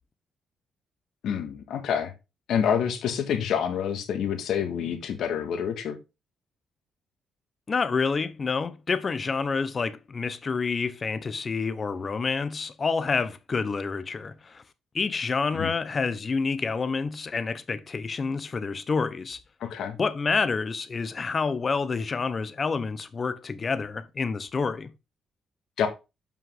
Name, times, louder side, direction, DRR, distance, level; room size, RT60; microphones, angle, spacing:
voice 1, 1.2-2.1 2.5-6.0 15.5-15.7 19.6-20.0 25.8-25.9, left 8 dB, 75° left, 1.8 m, -27 dB
voice 2, 7.7-14.6 14.9-19.4 20.0-24.9, left 4 dB, 35° left, 0.9 m, -28 dB
7.5 x 5.7 x 3.8 m
cardioid pair, 90°, 0 cm